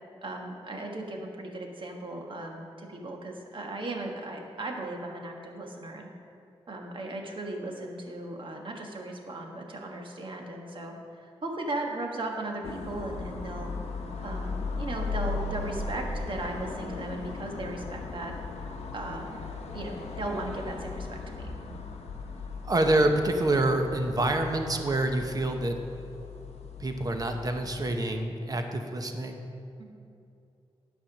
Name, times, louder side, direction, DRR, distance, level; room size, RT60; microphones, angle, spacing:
voice 1, 0.2-6.1 6.7-13.7 14.2-18.3 18.9-19.4 19.7-21.6 29.8-30.1, right 2 dB, 50° right, 1 dB, 1.4 m, -37 dB
sound 1, 12.6-28.0, left 4 dB, 85° left, 0.8 m, -37 dB
voice 2, 22.7-25.8 26.8-29.5, right 2 dB, 35° right, 5 dB, 1.0 m, -27 dB
10.0 x 5.8 x 6.0 m, 2.6 s
wide cardioid pair, 90°, 11 cm